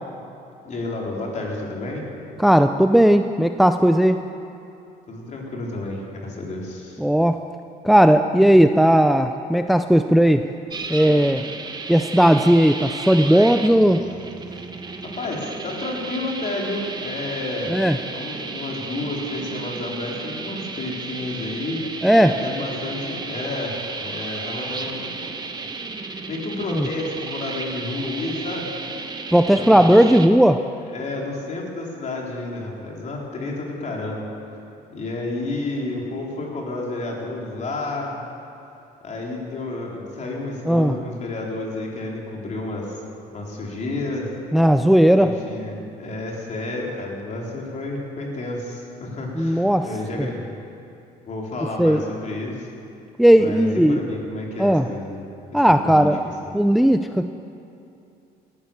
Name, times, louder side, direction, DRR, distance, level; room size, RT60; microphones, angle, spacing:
voice 1, 0.6-2.0 5.1-7.0 15.0-17.7 18.1-22.1 22.4-25.3 26.0-28.7 29.5-30.3 30.9-34.3 34.9-38.3 39.0-43.0 43.3-44.3 45.2-50.5 51.3-52.7 53.3-55.3 55.6-56.1 56.4-56.5, left 2 dB, 45° left, -2 dB, 3.8 m, -31 dB
voice 2, 2.4-4.2 7.0-7.4 7.8-10.4 10.9-11.4 11.9-14.0 17.7-18.0 22.0-22.4 26.7-26.9 29.3-30.6 40.7-41.0 44.5-45.3 49.4-49.9 51.8-52.0 53.2-54.0 54.6-54.8 55.5-56.2 56.5-57.3, equal, ahead, 8 dB, 0.5 m, -16 dB
sound 1, 10.7-30.3, right 3 dB, 25° right, 1.2 m, -33 dB
18.0 x 11.0 x 7.1 m, 2.7 s
cardioid pair, 110°, 17 cm